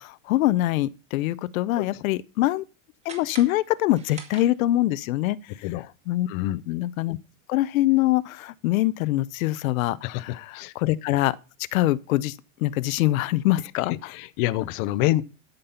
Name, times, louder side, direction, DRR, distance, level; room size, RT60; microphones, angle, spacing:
voice 1, 0.0-2.6 3.0-5.7 6.1-6.3 6.7-7.2 7.5-11.4 11.7-14.1, left 16 dB, 80° left, 0.7 m, -24 dB
sound 1, 3.0-5.0, right 4 dB, 15° right, 1.7 m, -45 dB
voice 2, 6.3-6.6 10.0-10.2 10.5-10.7 14.1-15.2, left 16 dB, 40° left, 0.6 m, -26 dB
12.5 x 5.4 x 5.7 m
supercardioid pair, 165°, 40 cm